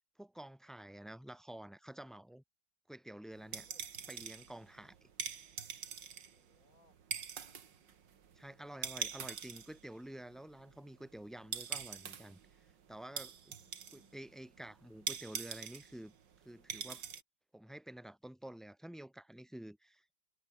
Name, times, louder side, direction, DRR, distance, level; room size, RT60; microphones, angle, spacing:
voice 1, 0.2-2.4 2.9-3.7 4.1-5.1 8.4-12.4 12.9-13.6 13.9-16.1 16.4-17.0 17.5-20.1, right 1 dB, ahead, 4.2 m, -50 dB
sound 1, 3.3-17.2, right 8 dB, 80° right, 2.3 m, -44 dB
voice 2, 3.5-3.8 6.3-7.6 13.5-14.2, left 2 dB, 50° left, 5.6 m, -71 dB
omnidirectional pair, 1.9 m